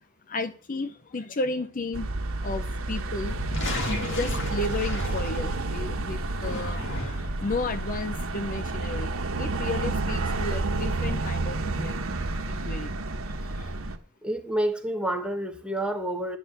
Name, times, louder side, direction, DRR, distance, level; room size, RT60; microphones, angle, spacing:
voice 1, 0.3-2.1 2.4-3.4 4.0-12.1 12.4-12.9 13.5-13.7, left 3 dB, 40° left, 0.6 m, -33 dB
sound 1, 1.9-14.0, right 2 dB, 85° right, 1.1 m, -30 dB
sound 2, 3.2-5.8 6.3-7.4, left 1 dB, 65° left, 2.2 m, -34 dB
voice 2, 14.2-16.4, right 1 dB, 5° right, 1.1 m, -28 dB
10.5 x 4.2 x 7.8 m
head